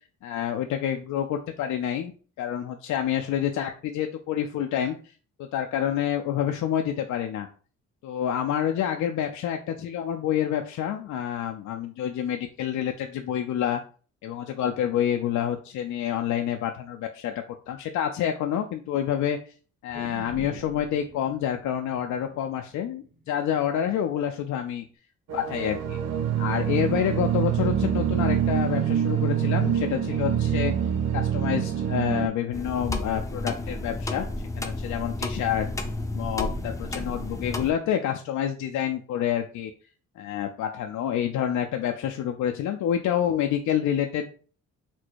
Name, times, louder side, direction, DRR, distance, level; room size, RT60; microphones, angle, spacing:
voice 1, 0.2-2.1 2.4-5.0 5.4-7.5 8.0-13.8 14.2-17.3 17.7-19.4 19.8-24.8 25.3-26.0 26.4-30.7 31.1-34.3 34.6-35.7 36.1-39.7 40.2-44.3, left 10 dB, 70° left, 5 dB, 0.5 m, -28 dB
sound 1, 19.9-24.4 24.8-24.9, right 2 dB, 30° right, 1.2 m, -46 dB
sound 2, 25.3-32.3, right 9 dB, 60° right, 0.8 m, -25 dB
sound 3, 32.5-37.7, left 2 dB, 10° left, 0.6 m, -32 dB
4.2 x 2.2 x 4.5 m, 0.40 s
cardioid pair, 90°, 30 cm